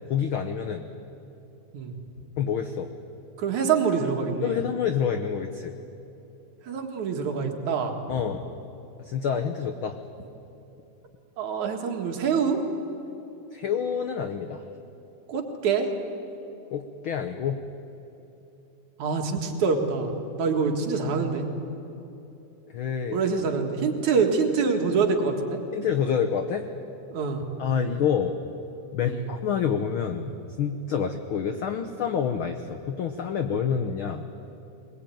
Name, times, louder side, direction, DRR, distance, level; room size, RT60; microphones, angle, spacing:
voice 1, 0.1-0.9 2.4-2.9 4.4-5.7 8.1-8.4 9.0-10.0 13.5-14.6 16.7-17.6 22.7-23.2 25.7-26.7 27.6-28.4 28.9-34.3, left 7 dB, 85° left, 7 dB, 1.1 m, -28 dB
voice 2, 3.4-4.6 6.6-8.0 11.4-12.6 15.3-15.9 19.0-20.1 20.4-21.5 23.1-25.6 27.1-27.4 29.1-29.3, right 5 dB, 65° right, 3 dB, 3.2 m, -25 dB
21.5 x 21.0 x 9.2 m, 3.0 s
omnidirectional pair, 3.6 m